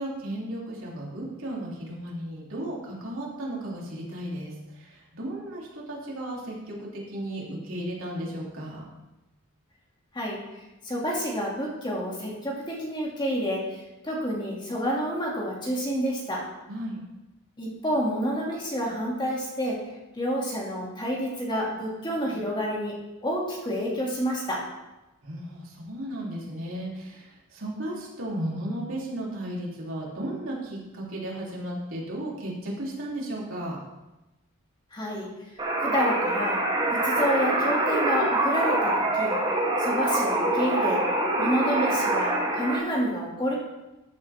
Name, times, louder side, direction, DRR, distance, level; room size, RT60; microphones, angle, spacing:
voice 1, 0.0-8.8 16.7-17.0 25.2-33.8, right 1 dB, 70° right, -4 dB, 3.2 m, -34 dB
voice 2, 10.8-16.4 17.6-19.8 20.1-23.0 23.2-24.6 34.9-35.3 35.8-36.6 36.9-39.4 39.8-41.0 41.4-43.6, equal, 20° left, -4 dB, 2.4 m, -29 dB
sound 1, 35.6-42.8, right 1 dB, 25° right, 2.8 m, -25 dB
14.0 x 8.4 x 3.6 m, 1.0 s
head